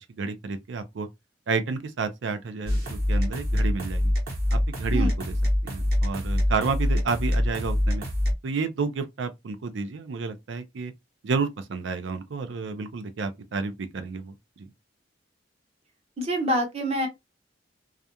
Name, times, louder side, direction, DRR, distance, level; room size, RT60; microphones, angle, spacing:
voice 1, 0.2-1.1 1.5-4.1 4.5-5.3 5.6-8.1 8.4-10.9 11.2-14.7, right 4 dB, 70° right, 0.4 m, -30 dB
sound 1, 2.7-8.3, left 1 dB, 55° right, 1.0 m, -25 dB
voice 2, 16.2-17.1, equal, 35° right, 0.7 m, -26 dB
2.4 x 2.2 x 2.7 m
head